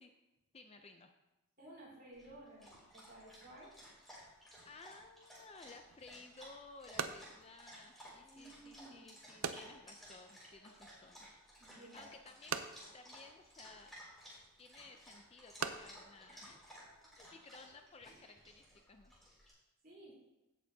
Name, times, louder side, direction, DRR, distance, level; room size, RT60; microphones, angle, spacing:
voice 1, 0.5-1.1 3.4-3.6 4.6-11.3 11.7-12.6 12.9-14.0 14.6-16.6 17.2-19.1, left 3 dB, 25° left, 5 dB, 0.5 m, -57 dB
voice 2, 1.6-3.7 8.2-9.1 11.6-12.1 19.8-20.1, right 1 dB, 40° right, -5 dB, 4.0 m, -56 dB
Dog, 2.1-19.5, equal, ahead, 3.5 m, -57 dB
sound 1, 5.9-17.3, right 6 dB, 75° right, 0.6 m, -47 dB
16.0 x 6.8 x 2.8 m, 0.97 s
head